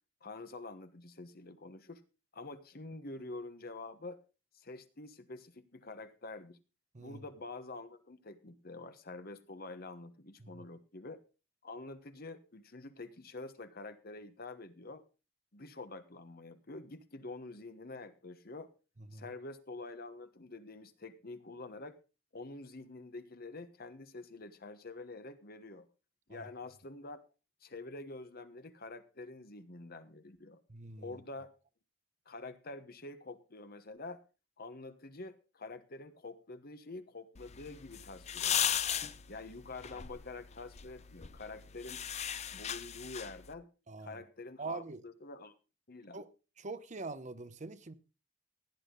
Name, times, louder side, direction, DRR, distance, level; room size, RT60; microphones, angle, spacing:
voice 1, 0.2-2.0 2.3-4.2 4.5-6.6 7.0-11.2 11.6-15.0 15.5-18.7 19.1-22.0 22.3-25.9 26.3-27.2 27.6-30.6 31.0-31.5 32.2-34.2 34.6-38.8 39.3-42.0 42.5-43.7 44.0-45.5 45.9-46.2, left 3 dB, 55° left, 1.2 m, -47 dB
voice 2, 30.7-31.1 43.9-44.2 44.6-45.0 46.1-46.3 46.6-47.9, right 3 dB, 40° right, 0.8 m, -43 dB
sound 1, 37.4-43.5, left 9 dB, 35° left, 0.6 m, -37 dB
16.0 x 10.5 x 3.9 m
head